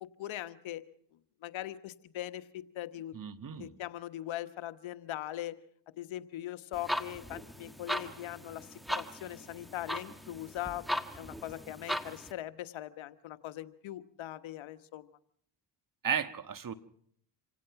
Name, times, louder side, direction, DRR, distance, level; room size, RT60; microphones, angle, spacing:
voice 1, 0.0-0.8 1.4-3.1 3.6-5.6 6.0-15.1, left 13 dB, 70° left, 12 dB, 1.3 m, -41 dB
voice 2, 3.1-3.7 16.0-16.7, right 7 dB, 40° right, 11 dB, 1.5 m, -34 dB
sound 1, 6.7-12.3, equal, ahead, 1.6 m, -38 dB
26.5 x 17.0 x 5.8 m, 0.65 s
supercardioid pair, 65°, 48 cm